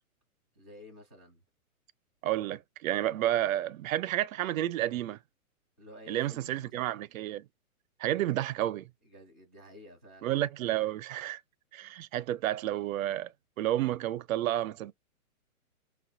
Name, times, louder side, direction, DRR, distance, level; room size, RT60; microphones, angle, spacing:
voice 1, 0.6-1.4 5.8-6.8 8.2-8.3 9.0-10.3, left 1 dB, 15° left, 0.3 m, -51 dB
voice 2, 2.2-5.2 6.1-7.5 8.0-8.9 10.2-11.4 11.7-13.3 13.6-14.9, right 13 dB, 70° right, 0.5 m, -31 dB
5.3 x 2.2 x 2.7 m
hypercardioid pair, 150°, 43 cm